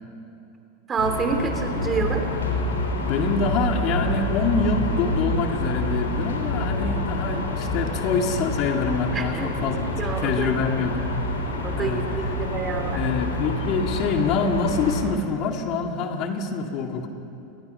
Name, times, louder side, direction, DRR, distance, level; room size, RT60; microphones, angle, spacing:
voice 1, 0.9-2.3 9.1-10.5 11.6-13.0, right 5 dB, 25° right, 5 dB, 3.1 m, -28 dB
sound 1, 1.0-15.0, left 1 dB, 85° left, 3.5 m, -27 dB
voice 2, 3.0-10.0 10.2-11.0 11.7-12.0 12.9-17.1, left 4 dB, 50° left, 4 dB, 2.3 m, -25 dB
29.5 x 20.5 x 5.7 m, 2.7 s
hypercardioid pair, 90°, 0 cm